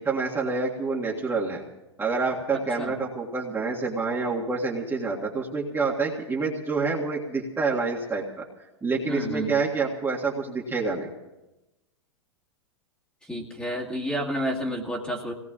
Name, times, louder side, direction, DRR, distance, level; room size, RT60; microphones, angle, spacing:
voice 1, 0.0-1.6 2.0-8.4 8.8-11.1, right 4 dB, 15° right, -4 dB, 1.8 m, -27 dB
voice 2, 2.5-2.9 9.1-9.6 13.3-15.3, equal, 5° left, -2 dB, 2.0 m, -30 dB
27.5 x 18.0 x 2.5 m, 1.0 s
hypercardioid pair, 110°, 15 cm